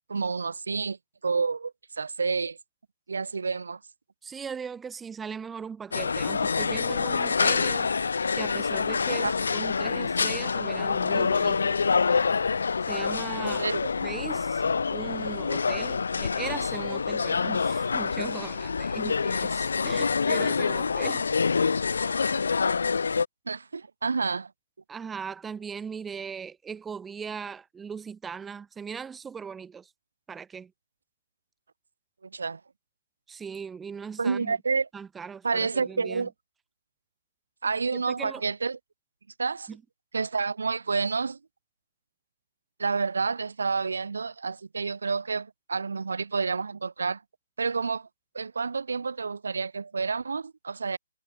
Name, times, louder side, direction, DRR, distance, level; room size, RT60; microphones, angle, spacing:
voice 1, 0.1-1.0 1.2-2.6 3.1-3.8 9.1-9.3 13.4-13.9 23.5-24.5 32.2-32.6 34.2-34.9 35.4-36.3 37.6-38.8 39.4-39.7 40.1-41.4 42.8-47.2 47.6-48.1 48.3-51.0, right 4 dB, 90° right, 0.5 m, -29 dB
voice 2, 4.2-7.9 8.3-11.8 12.9-13.7 14.0-14.6 14.9-21.3 24.9-29.9 30.3-30.7 33.3-34.6 34.9-36.3 37.9-38.4 39.7-39.8, right 6 dB, 5° right, 0.4 m, -39 dB
sound 1, 5.9-23.2, left 5 dB, 75° left, 0.8 m, -26 dB
hypercardioid pair, 175°, 0 cm